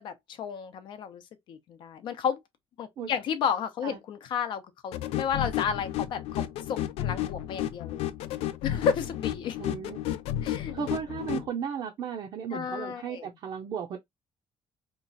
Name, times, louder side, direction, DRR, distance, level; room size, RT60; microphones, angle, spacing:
voice 1, 0.0-1.2 1.5-2.4 2.8-8.1 8.6-9.6 10.4-10.8 12.5-13.3, left 7 dB, 50° left, 0.7 m, -32 dB
sound 1, 4.9-11.5, left 12 dB, 85° left, 0.4 m, -32 dB
voice 2, 9.6-10.0 10.7-14.0, right 7 dB, 45° right, 0.6 m, -35 dB
3.0 x 2.4 x 3.9 m
cardioid pair, 180°, 10 cm